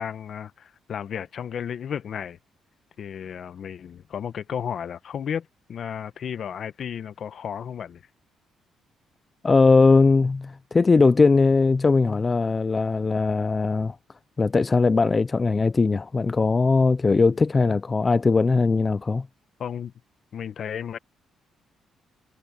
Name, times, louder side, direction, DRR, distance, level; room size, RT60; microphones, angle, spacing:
voice 1, 0.0-2.4 3.0-8.0 19.6-19.9 20.3-21.0, left 8 dB, 60° left, 1.2 m, -33 dB
voice 2, 9.4-14.0 14.4-19.3, left 4 dB, 30° left, 0.5 m, -20 dB
cardioid pair, 90°, 0 cm